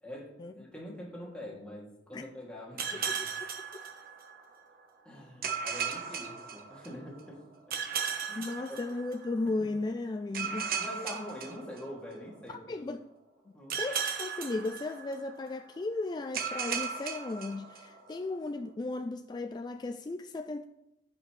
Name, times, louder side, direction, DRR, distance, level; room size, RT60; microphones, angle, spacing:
voice 1, 0.0-3.3 5.0-7.4 8.3-8.8 10.8-12.9 13.5-13.8, left 1 dB, 5° left, 2.7 m, -44 dB
sound 1, 2.8-4.5 5.4-7.2 7.7-9.4 10.3-12.3 13.7-15.5 16.3-18.2, right 6 dB, 55° right, 1.2 m, -36 dB
voice 2, 8.4-10.7 12.5-13.1 13.7-20.6, left 2 dB, 25° left, 0.3 m, -35 dB
15.0 x 5.7 x 3.3 m
head